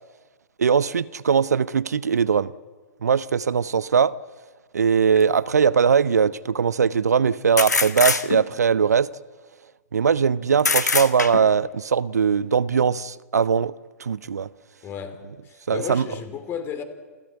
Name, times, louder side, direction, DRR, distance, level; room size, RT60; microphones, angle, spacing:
voice 1, 0.6-2.5 3.0-4.1 4.7-9.1 9.9-13.7 14.0-14.5 15.7-16.1, right 6 dB, 70° right, 0.6 m, -20 dB
sound 1, 5.2-5.3 7.6-8.7 10.6-11.6, left 4 dB, 80° left, 1.4 m, -23 dB
voice 2, 14.8-16.8, left 7 dB, 25° left, 2.8 m, -33 dB
29.0 x 13.5 x 8.3 m
figure-of-eight pair, 110°, 9 cm